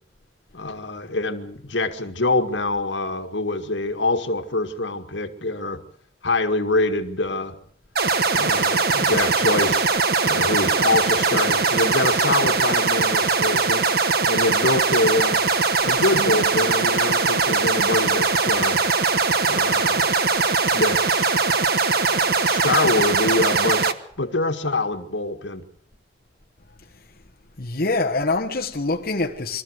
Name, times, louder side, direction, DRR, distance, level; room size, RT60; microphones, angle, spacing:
voice 1, 0.5-5.8 6.2-7.6 8.3-9.8 10.2-13.8 14.2-15.4 15.8-18.8 19.5-20.1 20.7-21.3 21.9-23.9 24.2-25.7, left 2 dB, 85° left, 1.9 m, -25 dB
sound 1, 8.0-23.9, right 4 dB, 55° right, 1.2 m, -20 dB
voice 2, 27.6-29.6, left 3 dB, 55° left, 1.4 m, -24 dB
24.5 x 13.5 x 8.1 m
head